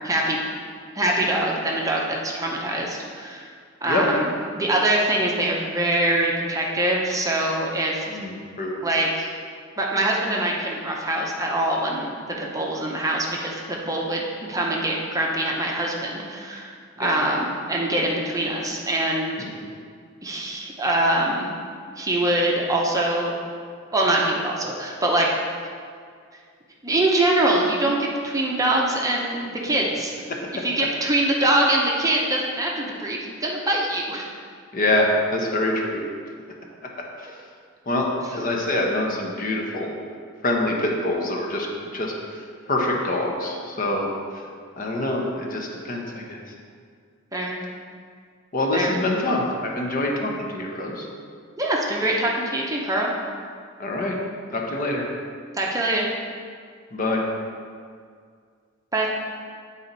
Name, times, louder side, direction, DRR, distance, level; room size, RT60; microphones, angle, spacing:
voice 1, 0.0-0.4 1.0-3.5 3.8-8.1 8.8-9.3 9.8-16.7 17.0-19.4 20.2-21.5 22.0-23.3 23.9-25.3 26.8-30.1 30.6-34.3 47.3-47.6 48.7-48.9 51.6-53.1 55.6-56.1 58.9-59.1, right 1 dB, 15° right, -2 dB, 0.7 m, -23 dB
voice 2, 8.1-8.8 17.0-17.2 19.4-19.7 34.7-36.0 37.2-37.3 37.9-39.9 40.4-41.7 41.9-42.4 42.7-44.1 44.8-46.4 48.5-51.1 53.8-54.2 54.5-55.0 56.9-57.2, left 1 dB, 45° left, 0 dB, 0.9 m, -25 dB
8.7 x 4.2 x 3.9 m, 2.1 s
head